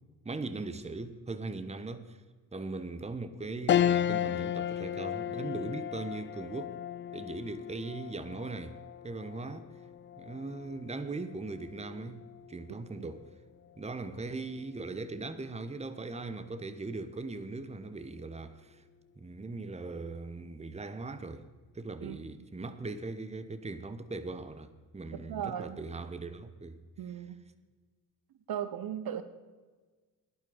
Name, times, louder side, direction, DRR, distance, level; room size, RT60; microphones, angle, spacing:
voice 1, 0.2-2.2 2.5-6.8 7.1-8.8 9.0-9.7 10.2-13.3 13.8-18.8 19.2-21.5 21.7-26.8, right 3 dB, 15° right, 1.1 m, -39 dB
sound 1, 3.7-13.3 13.8-13.9 15.2-15.6, left 10 dB, 25° left, 0.4 m, -34 dB
voice 2, 25.3-25.8 27.0-27.4 28.5-29.2, right 9 dB, 50° right, 1.1 m, -36 dB
16.5 x 11.0 x 5.1 m
figure-of-eight pair, 45°, 48 cm